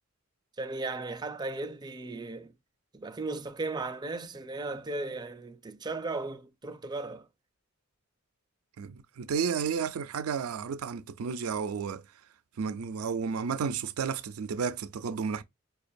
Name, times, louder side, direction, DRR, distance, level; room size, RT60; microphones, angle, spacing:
voice 1, 0.6-2.5 2.9-7.3, right 3 dB, 20° right, 0.4 m, -36 dB
voice 2, 8.8-12.0 12.6-15.4, right 6 dB, 90° right, 0.4 m, -32 dB
5.1 x 2.3 x 2.5 m
head